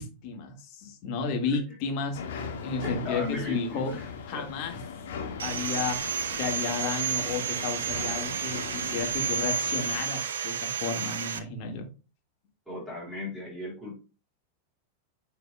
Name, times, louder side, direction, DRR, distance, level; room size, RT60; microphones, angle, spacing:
voice 1, 0.0-3.9 4.3-4.8 5.4-6.0 6.4-11.9, left 5 dB, 45° left, 3 dB, 1.7 m, -33 dB
sound 1, 2.1-10.0, left 5 dB, 60° left, 1.6 m, -39 dB
voice 2, 2.8-4.5 12.7-14.0, left 2 dB, ahead, -6 dB, 3.7 m, -37 dB
Sawing, 5.4-11.4, right 7 dB, 65° right, 0.7 m, -31 dB
9.4 x 4.8 x 2.2 m, 0.31 s
figure-of-eight pair, 90°, 0 cm